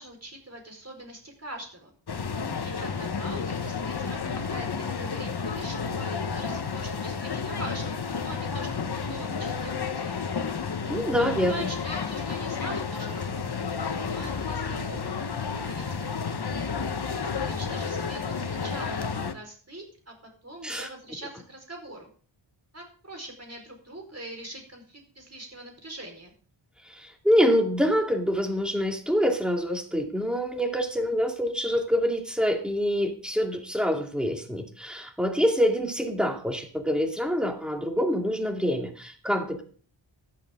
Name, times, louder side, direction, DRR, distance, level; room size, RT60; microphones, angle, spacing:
voice 1, 0.0-1.9 2.5-10.3 11.0-13.6 14.0-15.8 16.2-16.5 17.2-20.1 20.4-22.1 22.7-26.3, right 1 dB, 30° right, 2 dB, 4.6 m, -43 dB
sound 1, 2.1-19.3, left 5 dB, 55° left, 1.1 m, -31 dB
voice 2, 10.9-11.7 20.6-20.9 26.8-39.6, equal, ahead, 2 dB, 2.4 m, -26 dB
14.0 x 11.5 x 3.7 m, 0.43 s
wide cardioid pair, 80°, 48 cm